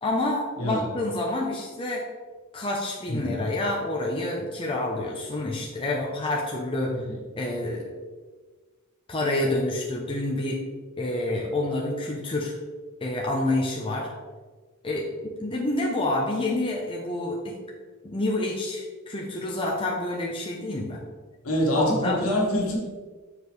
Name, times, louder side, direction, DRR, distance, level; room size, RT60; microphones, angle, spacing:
voice 1, 0.0-2.1 2.5-7.0 7.4-7.9 9.1-10.6 11.0-12.5 13.0-14.1 14.8-15.1 15.4-17.6 18.0-21.0 21.7-22.2, left 2 dB, 25° left, -1 dB, 0.7 m, -28 dB
voice 2, 3.1-3.4 6.9-7.0 21.4-22.7, equal, 70° left, -2 dB, 1.7 m, -25 dB
7.2 x 4.9 x 3.2 m, 1.4 s
head